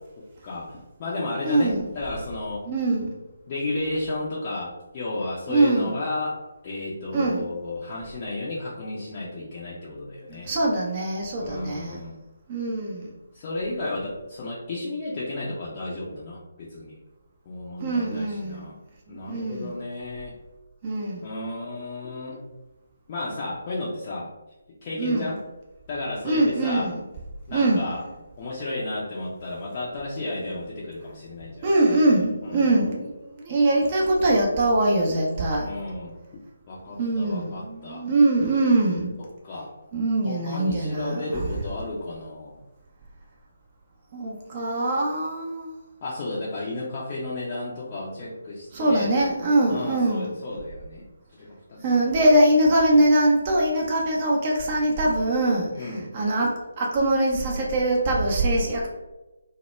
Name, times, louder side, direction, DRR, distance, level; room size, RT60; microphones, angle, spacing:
voice 1, 0.4-2.6 3.5-6.4 6.6-10.5 11.4-12.2 13.3-17.0 17.5-18.7 19.1-20.3 21.2-22.4 23.1-24.3 24.8-25.4 25.9-26.9 27.5-28.0 28.4-31.7 32.4-32.7 35.6-36.2 36.7-38.1 39.4-39.7 40.2-42.5 46.0-49.1 49.7-51.0 51.4-52.0 55.7-56.1, left 2 dB, 30° left, -6 dB, 0.4 m, -33 dB
voice 2, 1.4-1.9 2.7-3.1 5.5-5.9 7.1-7.5 10.3-12.0 12.5-13.1 17.8-18.7 19.1-19.8 20.8-21.3 25.0-25.3 26.2-27.0 27.5-27.9 31.6-35.7 37.0-39.2 39.9-41.5 44.1-45.7 48.7-50.3 51.8-58.9, right 1 dB, 30° right, -2 dB, 0.4 m, -23 dB
2.2 x 2.0 x 3.0 m, 1.1 s
figure-of-eight pair, 145°, 0 cm